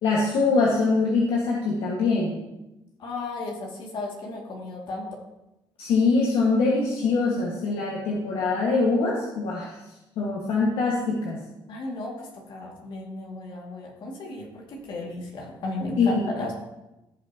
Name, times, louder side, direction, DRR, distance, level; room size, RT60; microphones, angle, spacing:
voice 1, 0.0-2.4 5.8-9.7 10.2-11.4 16.0-16.2, left 3 dB, 80° left, -4 dB, 1.9 m, -23 dB
voice 2, 3.0-5.1 11.7-16.5, left 2 dB, 60° left, -1 dB, 2.4 m, -34 dB
16.5 x 5.9 x 3.0 m, 0.95 s
cardioid pair, 100°, 9 cm